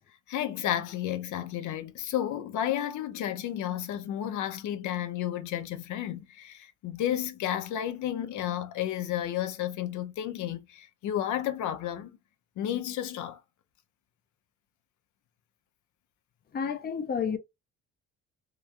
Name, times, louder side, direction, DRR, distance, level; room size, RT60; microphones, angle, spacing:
voice 1, 0.3-12.2 12.6-13.4, left 11 dB, 75° left, 0.6 m, -32 dB
voice 2, 16.5-17.4, left 6 dB, 30° left, 0.5 m, -30 dB
3.0 x 2.3 x 2.4 m
cardioid pair, 90°, 30 cm